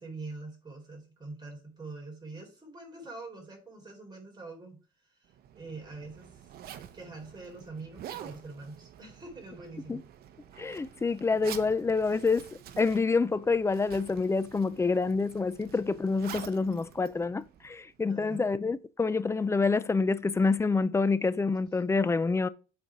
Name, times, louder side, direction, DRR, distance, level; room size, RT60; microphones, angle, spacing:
voice 1, 0.0-4.8 5.1-6.6 6.9-10.0 18.1-18.6, right 3 dB, 25° right, 3.8 m, -44 dB
Zipper (clothing), 5.3-18.0, right 10 dB, 65° right, 0.8 m, -48 dB
voice 2, 10.6-12.4 12.8-22.5, left 4 dB, 15° left, 0.5 m, -27 dB
8.0 x 4.4 x 4.9 m
cardioid pair, 110°, 17 cm